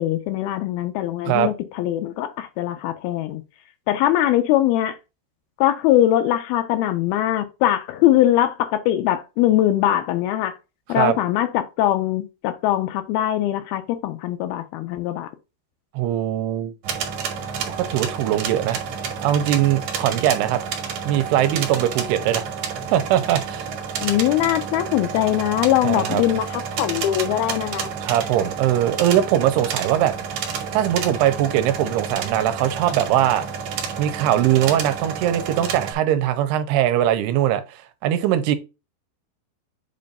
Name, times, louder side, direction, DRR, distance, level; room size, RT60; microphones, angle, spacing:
voice 1, 0.0-3.4 3.9-5.0 5.6-10.6 10.9-15.3 24.0-27.9, left 13 dB, 80° left, 2.3 m, -21 dB
voice 2, 15.9-16.7 17.8-18.8 19.2-20.6 21.1-22.5 22.9-23.7 25.8-26.2 28.0-30.1 30.7-33.4 34.0-38.6, right 11 dB, 85° right, 2.6 m, -21 dB
sound 1, 16.8-35.9, right 6 dB, 65° right, 1.9 m, -30 dB
7.5 x 2.5 x 5.3 m
omnidirectional pair, 4.7 m